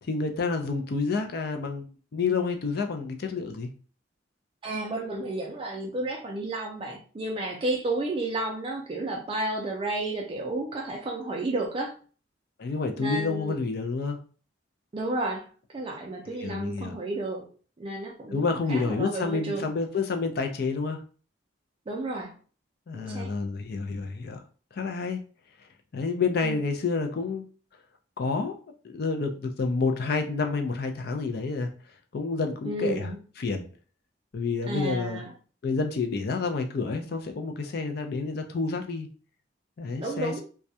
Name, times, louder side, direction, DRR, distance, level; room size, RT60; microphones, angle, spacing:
voice 1, 0.0-1.9 2.1-3.7 12.6-14.2 16.3-17.0 18.3-21.0 22.9-24.4 24.7-25.2 25.9-27.5 28.2-28.6 28.8-31.7 32.1-33.1 33.4-33.7 34.3-35.2 35.6-39.1 39.8-40.3, left 4 dB, 55° left, 5 dB, 0.4 m, -29 dB
voice 2, 4.6-11.9 13.0-13.5 14.9-15.4 15.7-17.5 17.8-19.7 21.9-22.3 22.9-23.3 26.4-26.6 32.6-33.2 34.7-35.3 40.0-40.4, right 2 dB, 30° right, 0 dB, 0.4 m, -32 dB
2.3 x 2.1 x 2.7 m, 0.39 s
head